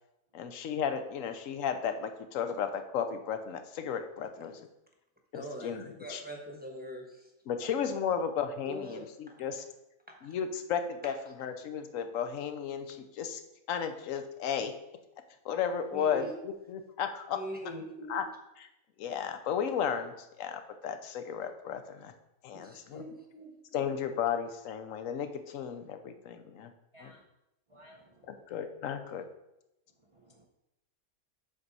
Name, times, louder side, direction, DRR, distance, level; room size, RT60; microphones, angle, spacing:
voice 1, 0.3-4.7 5.3-6.2 7.5-9.6 10.2-13.4 13.7-14.7 15.4-17.4 18.1-18.2 18.6-18.7 19.0-22.1 22.4-23.0 23.7-26.7 27.0-27.1 28.3-29.3, left 7 dB, 65° left, 8 dB, 1.1 m, -34 dB
voice 2, 5.3-5.7 6.0-7.3 7.6-7.7 8.7-9.4 10.1-10.3 15.9-16.3 17.3-18.1 22.5-23.5, equal, 5° right, 0 dB, 1.0 m, -43 dB
voice 3, 27.7-28.4 30.1-30.5, equal, 40° right, 1 dB, 0.4 m, -57 dB
7.7 x 6.1 x 4.1 m, 0.89 s
omnidirectional pair, 1.6 m